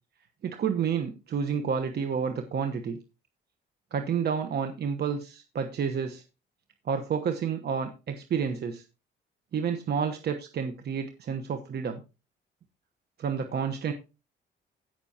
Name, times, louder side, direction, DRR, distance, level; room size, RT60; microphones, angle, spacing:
voice 1, 0.4-3.0 3.9-6.2 6.8-8.8 9.5-12.0 13.2-13.9, right 7 dB, 55° right, 6 dB, 1.1 m, -30 dB
16.5 x 6.0 x 2.8 m, 0.29 s
cardioid pair, 90°, 20 cm